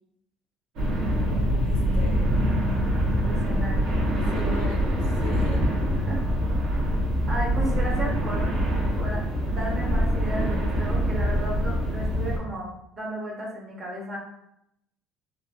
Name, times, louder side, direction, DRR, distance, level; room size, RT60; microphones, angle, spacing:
sound 1, 0.8-12.4, equal, 70° right, 0.9 m, -24 dB
voice 1, 1.3-2.4 4.1-5.7, left 4 dB, 90° left, 2 dB, 0.5 m, -40 dB
voice 2, 3.3-4.7 6.1-6.2 7.3-8.5 9.0-14.2, equal, 30° right, -2 dB, 0.7 m, -34 dB
2.8 x 2.4 x 2.4 m, 0.79 s
cardioid pair, 160°, 0 cm